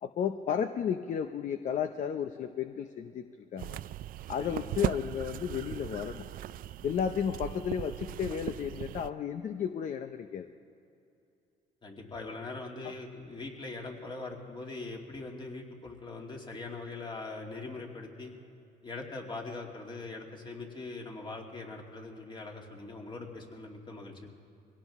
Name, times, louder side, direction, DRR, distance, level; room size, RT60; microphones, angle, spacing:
voice 1, 0.0-3.3 3.5-3.8 4.3-6.3 6.8-10.5 12.8-12.9, left 8 dB, 45° left, 9 dB, 0.7 m, -33 dB
sound 1, 3.6-9.1, right 13 dB, 55° right, 0.4 m, -38 dB
voice 2, 11.8-18.3 18.8-24.3, left 3 dB, 30° left, 0 dB, 2.5 m, -42 dB
23.0 x 17.5 x 3.6 m, 2.7 s
cardioid pair, 110°, 17 cm